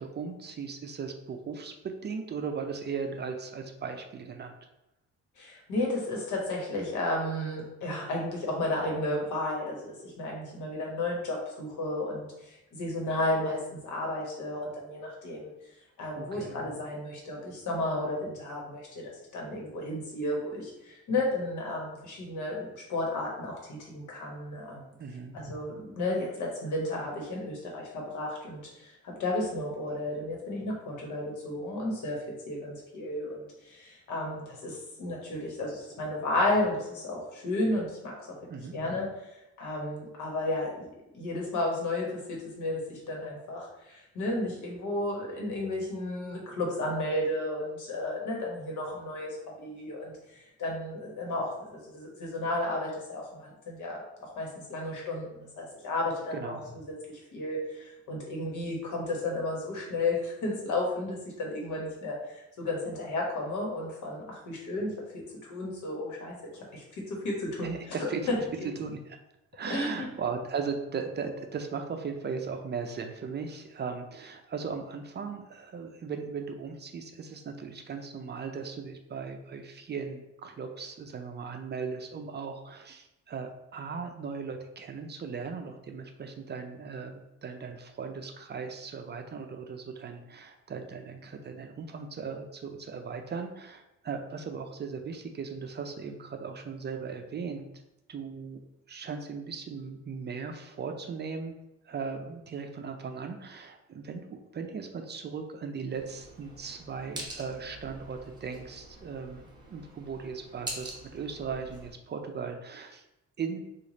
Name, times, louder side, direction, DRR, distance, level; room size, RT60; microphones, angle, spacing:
voice 1, 0.0-1.7 2.0-4.5 16.2-16.6 25.0-25.4 38.5-38.7 56.3-56.6 67.6-68.2 68.6-69.2 69.5-97.7 98.1-98.6 98.9-101.5 101.8-113.0 113.4-113.6, right 5 dB, 35° right, 5 dB, 0.4 m, -38 dB
voice 2, 5.4-15.5 16.0-24.9 25.3-38.1 38.7-40.9 41.1-56.5 57.1-66.3 66.7-68.7 69.7-70.1, left 2 dB, 75° left, -2 dB, 1.3 m, -33 dB
sound 1, 105.9-111.9, right 1 dB, 15° right, 1.0 m, -45 dB
3.1 x 2.5 x 3.9 m, 0.91 s
cardioid pair, 90°, 30 cm